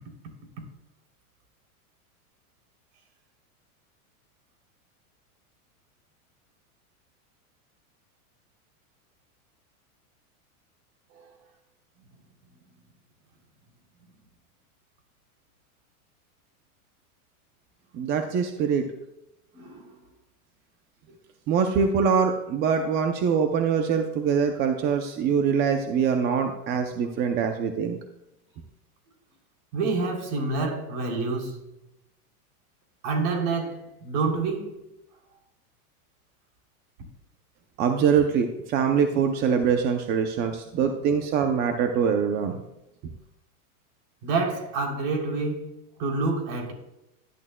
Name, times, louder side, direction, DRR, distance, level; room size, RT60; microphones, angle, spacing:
voice 1, 17.9-18.9 21.5-28.0 37.8-42.6, right 6 dB, 25° right, 0.5 m, -24 dB
voice 2, 19.5-19.9 29.7-31.6 33.0-34.8 44.2-46.7, right 3 dB, 50° right, 3.2 m, -28 dB
16.5 x 11.0 x 2.2 m
supercardioid pair, 150°, 44 cm